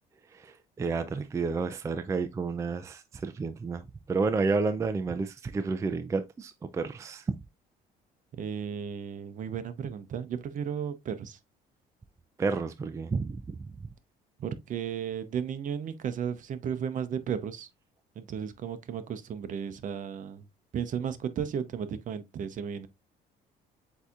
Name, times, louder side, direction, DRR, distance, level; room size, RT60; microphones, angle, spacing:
voice 1, 0.3-3.8 4.1-7.2 12.4-13.4, right 4 dB, 20° right, 0.3 m, -30 dB
voice 2, 8.3-11.4 14.4-17.7 18.2-20.4 20.7-22.9, right 8 dB, 50° right, 0.7 m, -34 dB
8.0 x 2.8 x 2.4 m
cardioid pair, 110°, 17 cm